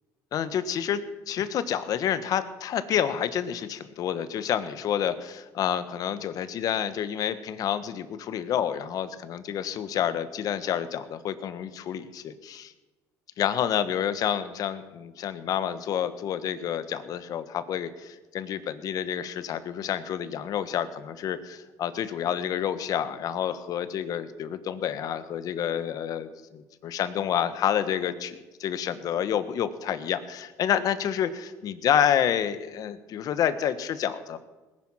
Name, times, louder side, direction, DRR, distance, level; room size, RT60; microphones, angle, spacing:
voice 1, 0.3-1.0 1.3-12.7 13.4-34.4, left 9 dB, 55° left, 12 dB, 1.3 m, -29 dB
19.5 x 11.0 x 5.8 m, 1.2 s
cardioid pair, 100°, 7 cm